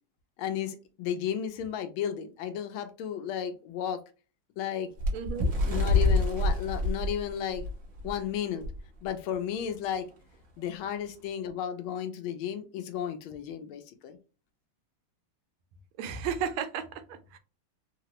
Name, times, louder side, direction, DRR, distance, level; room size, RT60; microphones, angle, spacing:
voice 1, 0.4-4.0 4.6-4.9 5.7-7.7 8.0-8.6 9.0-10.1 10.6-14.2, left 9 dB, 80° left, 8 dB, 1.4 m, -33 dB
Bird, 5.0-8.2 8.6-8.8 9.1-9.3 10.1-10.2, left 2 dB, 55° right, 0.9 m, -26 dB
voice 2, 5.1-5.5 16.0-17.4, right 7 dB, 85° right, 9 dB, 1.4 m, -34 dB
3.7 x 2.0 x 2.8 m, 0.33 s
omnidirectional pair, 2.3 m